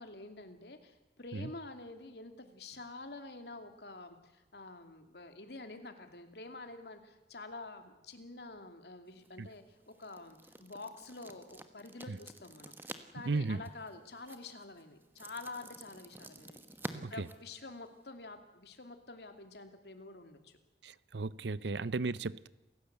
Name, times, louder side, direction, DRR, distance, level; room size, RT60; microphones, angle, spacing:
voice 1, 0.0-16.6 16.9-20.6, left 3 dB, 75° left, 2.7 m, -48 dB
sound 1, 9.1-18.1, right 1 dB, 10° right, 1.3 m, -50 dB
voice 2, 13.3-13.6 16.9-17.3 20.8-22.5, right 3 dB, 85° right, 0.7 m, -35 dB
28.5 x 16.0 x 8.1 m
head